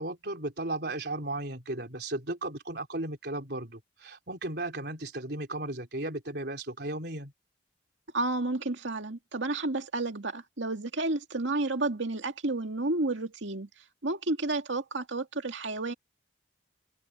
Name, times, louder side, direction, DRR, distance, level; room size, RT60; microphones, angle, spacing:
voice 1, 0.0-7.3, right 2 dB, 55° right, 4.2 m, -35 dB
voice 2, 8.1-13.7 14.0-15.9, right 2 dB, 75° right, 2.2 m, -31 dB
head